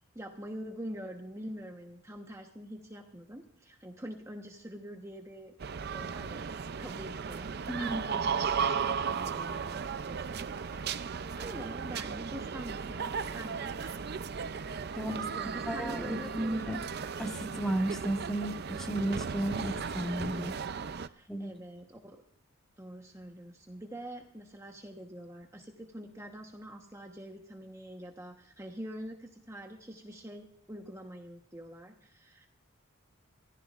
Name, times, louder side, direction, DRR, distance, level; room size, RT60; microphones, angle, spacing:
voice 1, 0.1-5.5 5.8-6.5 6.8-14.0 15.1-16.7 21.0-22.2 22.8-32.5, equal, 15° right, 2 dB, 1.1 m, -45 dB
sound 1, 5.6-21.1, right 6 dB, 50° right, 0.5 m, -35 dB
voice 2, 7.7-8.0 14.9-15.2 15.7-16.8 17.2-20.5 21.3-21.5, right 1 dB, 5° left, 3 dB, 1.3 m, -33 dB
24.5 x 15.0 x 2.5 m, 0.67 s
head